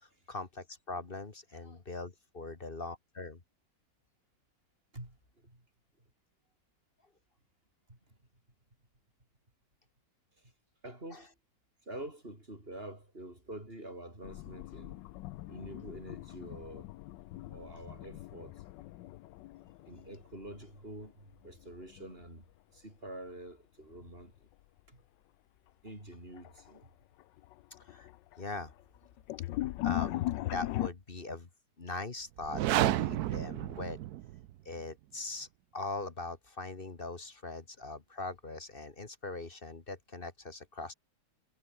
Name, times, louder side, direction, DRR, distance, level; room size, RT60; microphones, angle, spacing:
voice 1, 0.0-3.4 11.1-11.2 27.8-28.1 28.4-28.7 29.8-31.5 31.8-34.0 34.7-40.9, left 3 dB, 30° left, 1.9 m, -41 dB
voice 2, 4.9-5.6 6.0-6.1 7.9-8.2 10.4-10.5 10.8-11.4 11.8-15.0 15.5-16.9 17.5-18.6 19.9-22.5 22.7-24.5 24.9-25.0 25.8-26.9, right 1 dB, 30° right, 7.3 m, -47 dB
sound 1, 14.2-21.1 21.3-22.2 23.9-24.2 24.8-24.9 25.9-26.0 26.3-26.8 27.2-30.9, left 16 dB, 90° left, 1.3 m, -39 dB
sound 2, 32.4-34.5, right 14 dB, 65° right, 1.1 m, -31 dB
omnidirectional pair, 1.9 m